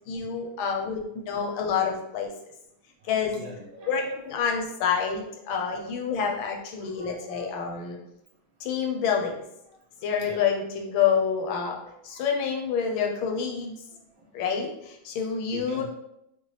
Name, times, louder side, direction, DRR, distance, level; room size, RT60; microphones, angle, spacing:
voice 1, 0.1-2.3 3.1-3.4 3.9-8.0 8.6-9.4 10.0-11.8 12.0-13.8 14.3-15.8, left 6 dB, 80° left, 2 dB, 1.5 m, -28 dB
voice 2, 3.0-4.2 4.7-4.8 6.8-7.4 10.2-10.5 11.8-12.6 14.2-14.3 15.4-15.8, right 2 dB, 75° right, -2 dB, 1.7 m, -45 dB
5.3 x 2.1 x 3.2 m, 0.80 s
omnidirectional pair, 2.2 m